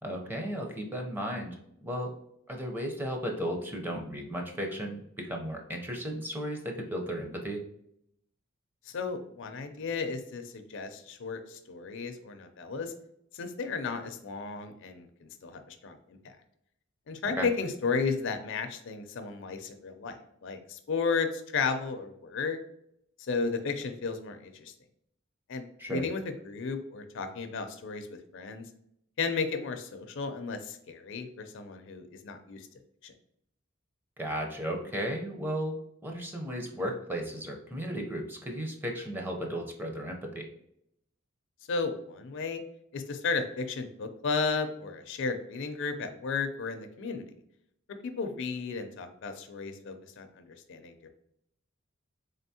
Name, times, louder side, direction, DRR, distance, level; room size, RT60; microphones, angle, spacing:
voice 1, 0.0-1.6 1.8-2.1 2.5-7.6 17.4-17.5 25.8-26.0 34.2-35.8 36.0-40.5, equal, 10° right, 1 dB, 0.6 m, -35 dB
voice 2, 8.9-12.9 13.3-16.4 17.1-20.2 20.4-22.6 23.2-24.7 25.5-28.1 28.3-28.6 29.2-32.7 33.0-33.1 41.7-42.6 42.9-47.3 48.0-50.9, left 4 dB, 60° left, 7 dB, 0.5 m, -34 dB
3.8 x 3.4 x 2.7 m, 0.75 s
head